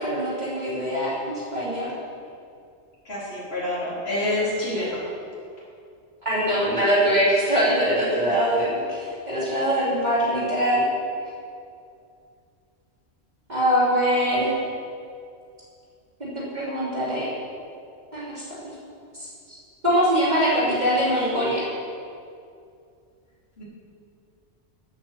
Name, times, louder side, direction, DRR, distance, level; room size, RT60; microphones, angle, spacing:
voice 1, 0.0-1.9 6.2-10.8 13.5-14.5 16.2-17.3 18.1-18.4 19.5-19.6 19.8-21.7, equal, 40° right, -8 dB, 3.2 m, -23 dB
voice 2, 3.0-5.0 8.3-8.4 23.6-23.7, left 1 dB, 60° left, -8 dB, 4.1 m, -27 dB
13.0 x 8.8 x 7.6 m, 2.4 s
omnidirectional pair, 1.2 m